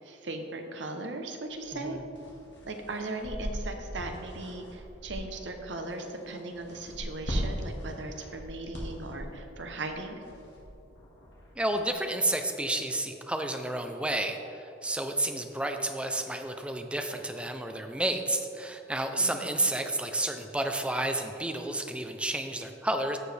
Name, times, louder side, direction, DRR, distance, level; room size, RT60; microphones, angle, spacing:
voice 1, 0.0-2.0 2.6-10.2 19.2-19.6, right 2 dB, 85° right, 5 dB, 0.9 m, -38 dB
sound 1, 1.5-11.9, equal, 70° left, 1.9 m, -40 dB
voice 2, 1.7-2.0 11.6-23.2, right 1 dB, 5° right, 5 dB, 0.5 m, -31 dB
14.5 x 4.9 x 3.3 m, 2.9 s
head